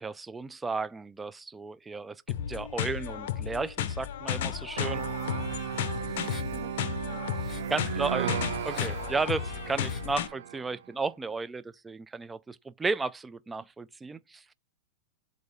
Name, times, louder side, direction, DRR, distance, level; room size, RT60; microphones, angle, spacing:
voice 1, 0.0-5.1 7.7-8.4 8.6-14.5, right 4 dB, 10° right, 0.3 m, -34 dB
sound 1, 2.3-10.3, left 10 dB, 65° left, 0.8 m, -34 dB
sound 2, 4.8-10.7, right 10 dB, 85° right, 0.5 m, -35 dB
sound 3, 4.9-10.2, left 7 dB, 25° left, 1.0 m, -53 dB
voice 2, 5.5-6.3 6.5-6.8 7.0-8.0 8.7-9.2 10.7-11.0, right 10 dB, 45° right, 1.2 m, -52 dB
7.8 x 2.7 x 5.4 m
supercardioid pair, 145°, 0 cm